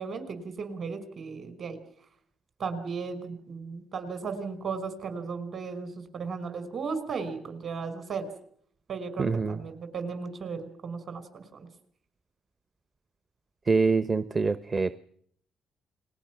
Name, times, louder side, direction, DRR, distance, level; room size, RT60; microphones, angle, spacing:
voice 1, 0.0-1.8 2.6-8.3 8.9-11.7, right 5 dB, 50° right, 10 dB, 5.3 m, -35 dB
voice 2, 9.2-9.6 13.7-15.0, right 4 dB, 35° right, 13 dB, 0.9 m, -25 dB
29.5 x 21.0 x 6.2 m, 0.64 s
cardioid pair, 90°, 0 cm